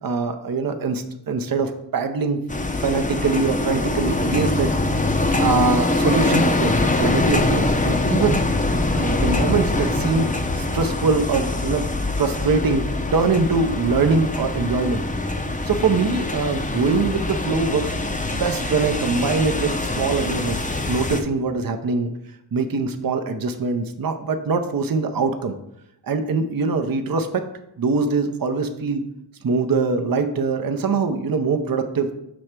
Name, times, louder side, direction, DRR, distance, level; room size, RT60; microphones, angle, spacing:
voice 1, 0.0-2.4 2.8-4.7 5.4-8.4 8.9-11.8 12.2-12.8 13.1-15.0 15.6-17.9 18.3-22.1 22.5-25.6 26.0-27.4 27.8-29.0 29.4-32.1, right 4 dB, 50° right, 7 dB, 0.7 m, -23 dB
sound 1, 2.5-21.2, left 2 dB, 15° left, 0.6 m, -23 dB
6.1 x 3.3 x 5.9 m, 0.81 s
wide cardioid pair, 60°, 46 cm